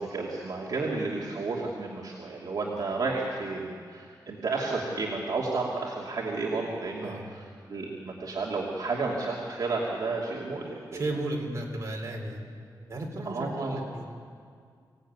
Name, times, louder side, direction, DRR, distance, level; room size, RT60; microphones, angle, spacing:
voice 1, 0.0-11.0 13.3-13.8, right 3 dB, 55° right, -4 dB, 2.8 m, -32 dB
voice 2, 10.9-12.4 12.9-14.0, right 1 dB, 40° right, 0 dB, 4.3 m, -34 dB
25.0 x 17.5 x 9.7 m, 2.1 s
wide cardioid pair, 155°, 8 cm